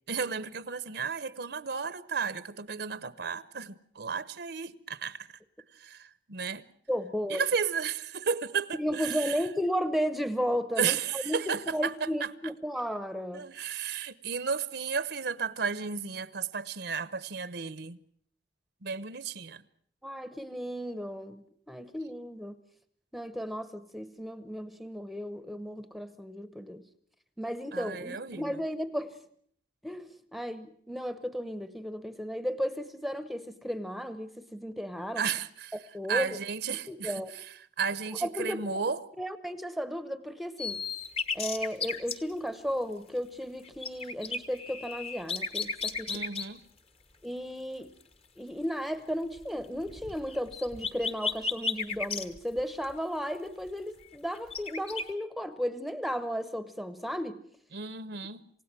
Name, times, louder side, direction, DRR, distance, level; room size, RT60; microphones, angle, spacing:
voice 1, 0.1-5.3 5.8-6.6 7.3-9.4 10.8-12.1 13.3-18.0 18.8-19.6 27.7-28.6 35.2-35.7 36.1-37.2 37.8-39.0 46.1-46.6 57.7-58.5, right 6 dB, 65° right, 0.9 m, -33 dB
voice 2, 6.9-7.4 8.7-13.4 20.0-22.6 23.1-26.8 27.4-29.2 29.8-35.2 35.9-36.4 36.9-37.4 38.2-38.8 39.2-40.9 41.3-46.2 47.2-47.9 48.4-57.4, equal, ahead, 0.9 m, -34 dB
sound 1, 40.6-42.2 43.4-46.5 49.3-52.9 53.7-53.8 54.0-55.1, left 4 dB, 35° left, 1.3 m, -34 dB
28.0 x 17.0 x 7.5 m
head